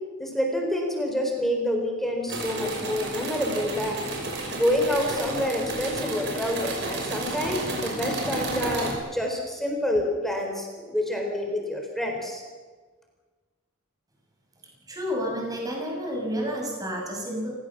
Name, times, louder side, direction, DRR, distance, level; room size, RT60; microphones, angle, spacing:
voice 1, 0.2-4.1 4.5-12.4, left 1 dB, ahead, 1 dB, 4.1 m, -27 dB
sound 1, 2.3-8.9, right 2 dB, 55° right, 5.8 m, -31 dB
voice 2, 14.9-17.6, equal, 15° right, 0 dB, 6.2 m, -30 dB
29.0 x 16.0 x 7.4 m, 1.4 s
head